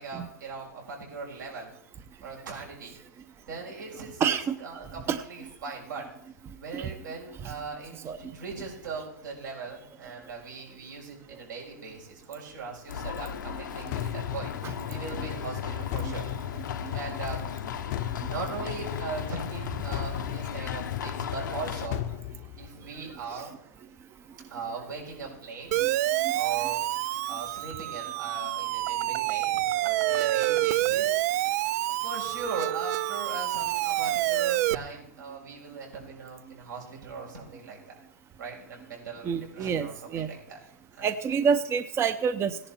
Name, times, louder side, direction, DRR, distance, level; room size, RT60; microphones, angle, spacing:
voice 1, 0.0-1.7 2.2-2.9 3.5-6.1 6.6-16.2 16.9-17.5 18.3-22.0 22.5-23.5 24.5-25.8 26.3-26.8 27.3-31.1 31.8-38.0 38.4-40.6 40.9-41.1, right 4 dB, 85° right, -2 dB, 6.6 m, -39 dB
voice 2, 4.2-4.6 5.1-5.2 6.7-6.9 7.4-7.5 8.0-8.2 14.6-14.7 16.0-16.1 23.3-23.4 25.8-25.9 39.2-40.3 41.0-42.6, right 6 dB, 25° right, 10 dB, 0.8 m, -27 dB
sound 1, 12.9-21.9, left 7 dB, 85° left, 1.2 m, -37 dB
sound 2, 13.9-23.1, left 11 dB, 55° left, 0.9 m, -36 dB
Siren, 25.7-34.7, right 15 dB, 60° right, 0.4 m, -27 dB
17.0 x 11.0 x 4.5 m, 0.75 s
hypercardioid pair, 120°, 10 cm